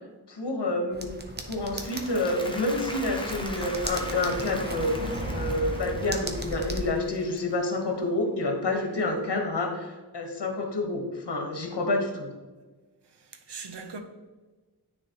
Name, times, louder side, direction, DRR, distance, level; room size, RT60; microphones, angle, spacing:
voice 1, 0.3-1.1 1.4-12.3, left 2 dB, 85° left, 1.3 m, -28 dB
sound 1, 0.9-6.9, right 1 dB, 25° right, 0.7 m, -36 dB
Applause, 1.6-7.9, left 1 dB, 15° left, 0.7 m, -41 dB
voice 2, 13.0-14.0, right 4 dB, 85° right, 0.8 m, -41 dB
9.6 x 4.2 x 2.9 m
wide cardioid pair, 100°, 40 cm